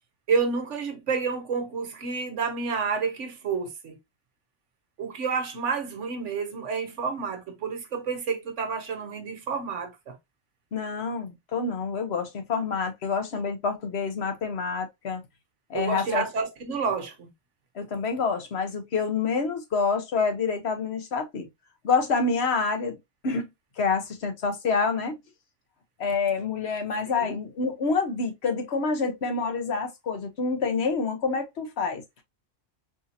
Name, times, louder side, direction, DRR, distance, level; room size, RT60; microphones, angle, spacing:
voice 1, 0.3-4.0 5.0-10.2 15.7-17.3 27.2-27.4, right 5 dB, 65° right, 1.1 m, -29 dB
voice 2, 10.7-15.2 15.7-16.2 17.7-21.5 21.8-23.0 23.2-23.5 23.8-25.2 26.0-32.0, left 4 dB, 55° left, 1.2 m, -27 dB
4.9 x 2.7 x 2.6 m
omnidirectional pair, 1.4 m